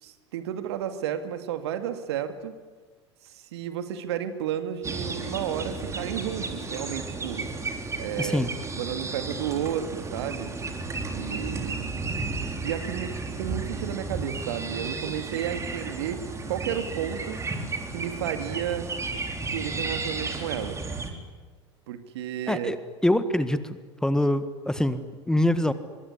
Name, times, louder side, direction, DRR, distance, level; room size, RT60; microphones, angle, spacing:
voice 1, 0.0-2.5 3.2-7.5 7.9-8.5 8.7-10.5 11.1-12.0 12.6-17.4 17.9-18.9 19.5-20.8 21.9-22.7, right 10 dB, 65° right, 9 dB, 2.4 m, -32 dB
sound 1, 4.8-21.1, right 3 dB, 20° right, 4.0 m, -33 dB
voice 2, 8.2-8.5 22.5-22.8 23.0-25.7, left 1 dB, 5° left, 12 dB, 1.6 m, -25 dB
24.5 x 23.0 x 10.0 m, 1.4 s
figure-of-eight pair, 80°, 15 cm